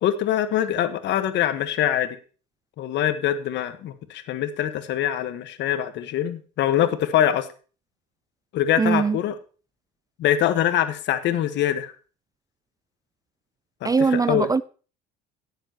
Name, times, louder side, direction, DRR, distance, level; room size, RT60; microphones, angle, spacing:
voice 1, 0.0-2.2 2.8-7.5 8.5-9.4 10.2-11.9 13.8-14.5, left 11 dB, 60° left, 1.4 m, -24 dB
voice 2, 8.8-9.2 13.8-14.6, right 5 dB, 15° right, 0.4 m, -21 dB
17.0 x 7.3 x 2.9 m
supercardioid pair, 80°, 21 cm